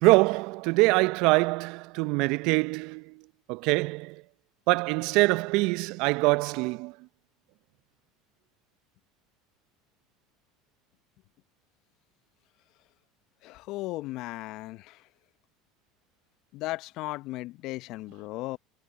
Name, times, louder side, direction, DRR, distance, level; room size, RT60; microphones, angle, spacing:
voice 1, 0.0-3.1 3.5-4.1 4.7-6.9, right 24 dB, 60° right, 1.1 m, -24 dB
voice 2, 13.4-15.0 16.5-18.6, left 19 dB, 60° left, 1.2 m, -36 dB
hypercardioid pair, 70°, 0 cm